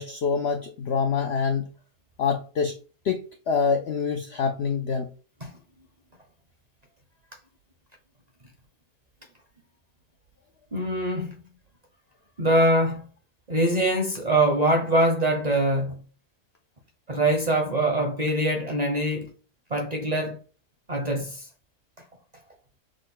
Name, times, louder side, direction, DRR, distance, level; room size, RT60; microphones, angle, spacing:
voice 1, 0.0-1.7 2.2-2.8 3.0-3.2 3.5-5.1, left 5 dB, 85° left, 0.5 m, -25 dB
voice 2, 10.7-11.4 12.4-13.1 13.5-16.0 17.1-19.3 19.7-20.4 20.9-21.5, right 1 dB, 40° right, 0.6 m, -23 dB
6.4 x 2.1 x 3.7 m
omnidirectional pair, 1.7 m